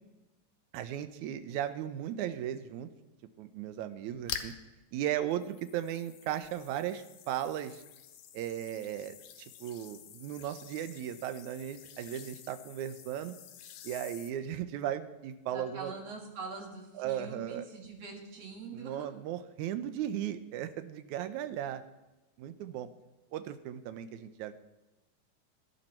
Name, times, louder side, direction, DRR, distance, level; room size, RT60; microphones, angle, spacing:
voice 1, 0.7-2.9 3.4-4.5 4.9-7.8 8.3-9.2 9.6-13.3 13.8-15.9 17.0-17.6 18.7-21.8 22.4-22.9 23.3-24.6, right 11 dB, 75° right, 10 dB, 1.9 m, -36 dB
sound 1, 4.2-4.7 5.3-14.3, left 9 dB, 85° left, 2.7 m, -47 dB
voice 2, 15.5-19.1, right 4 dB, 50° right, 0 dB, 3.1 m, -43 dB
18.5 x 11.0 x 4.4 m, 1.0 s
omnidirectional pair, 4.0 m